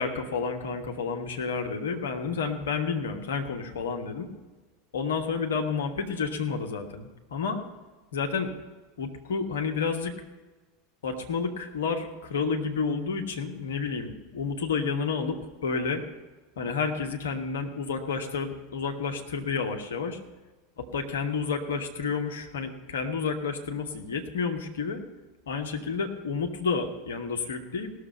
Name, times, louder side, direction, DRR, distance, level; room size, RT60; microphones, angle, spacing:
voice 1, 0.0-4.3 4.9-7.6 8.1-8.5 9.0-10.1 11.0-16.0 16.6-20.2 20.8-25.0 25.5-27.9, left 5 dB, 65° left, 4 dB, 1.4 m, -30 dB
17.5 x 6.7 x 5.5 m, 1.3 s
figure-of-eight pair, 80°, 0 cm